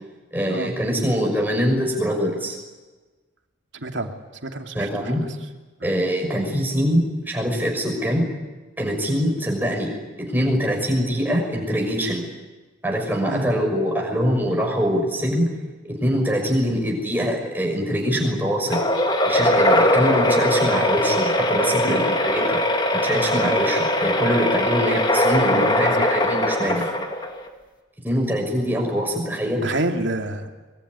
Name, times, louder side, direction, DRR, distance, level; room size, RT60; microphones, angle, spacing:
voice 1, 0.3-2.6 4.7-5.3 5.8-8.2 8.8-9.9 10.2-12.3 12.8-15.5 15.8-18.8 19.2-22.6 22.9-26.9 28.0-29.6, equal, 10° right, 1 dB, 6.2 m, -23 dB
voice 2, 3.7-4.1 4.4-5.1 5.8-6.0 13.3-13.5 21.8-22.0 25.5-26.1 26.6-26.9 29.6-30.5, right 2 dB, 70° right, 4 dB, 2.7 m, -28 dB
sound 1, 18.7-27.5, left 1 dB, 20° left, 2.3 m, -21 dB
23.5 x 23.0 x 9.8 m, 1.2 s
head